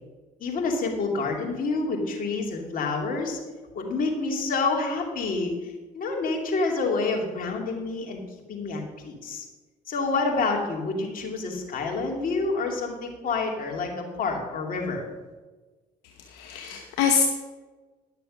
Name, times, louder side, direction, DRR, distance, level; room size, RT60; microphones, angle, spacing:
voice 1, 0.4-3.4 3.7-8.2 8.5-9.4 9.9-15.1, left 3 dB, 55° left, 1 dB, 2.6 m, -28 dB
voice 2, 16.3-17.2, left 7 dB, 85° left, 3 dB, 0.9 m, -24 dB
11.0 x 6.7 x 6.3 m, 1.3 s
supercardioid pair, 75°, 17 cm